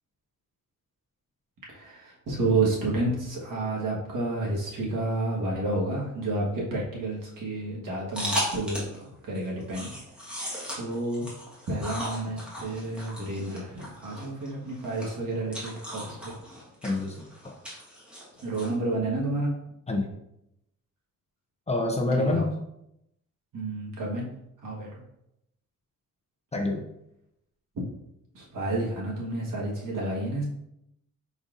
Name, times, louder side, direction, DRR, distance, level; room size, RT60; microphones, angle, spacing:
voice 1, 1.7-9.9 10.7-11.2 11.7-16.3 18.4-19.5 22.1-22.5 23.5-24.3 24.6-24.9 28.3-30.4, right 2 dB, 80° right, -3 dB, 1.4 m, -30 dB
sound 1, 8.1-9.0 9.3-18.7, equal, 5° right, 1.3 m, -37 dB
voice 2, 16.8-17.5 19.9-20.1 21.7-22.5 26.5-26.9, left 2 dB, 20° left, 1 dB, 0.5 m, -27 dB
5.1 x 4.1 x 2.5 m, 0.82 s
wide cardioid pair, 155°, 32 cm